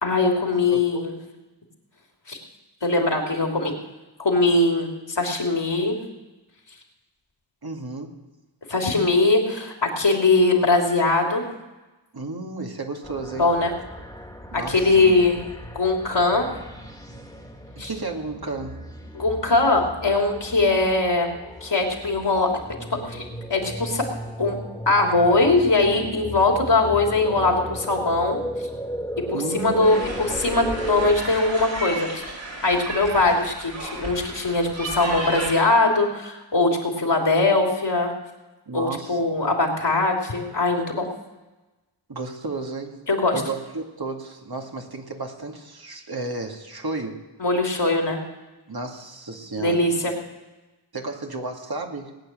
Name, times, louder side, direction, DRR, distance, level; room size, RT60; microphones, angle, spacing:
voice 1, 0.0-1.1 2.3-2.4 2.8-3.8 4.2-6.0 8.7-11.4 13.4-13.7 14.5-15.4 15.7-16.5 17.8-17.9 19.1-21.3 21.6-22.5 23.1-23.2 23.5-24.0 24.4-24.6 24.9-28.4 29.3-32.2 32.6-38.1 38.7-41.1 43.1-43.4 47.4-48.2 49.6-50.1, left 2 dB, 60° left, 1 dB, 3.1 m, -21 dB
voice 2, 0.7-1.0 7.6-8.2 12.1-13.5 14.5-15.1 17.8-18.8 29.3-30.0 38.7-39.2 42.1-43.0 43.3-47.2 48.7-49.9 50.9-52.2, right 3 dB, 50° right, 2 dB, 2.2 m, -33 dB
sound 1, 13.0-31.2, equal, 5° left, 2.2 m, -36 dB
sound 2, 29.8-35.6, right 2 dB, 65° right, 4.9 m, -33 dB
19.5 x 9.0 x 7.5 m, 1.1 s
wide cardioid pair, 50°, 47 cm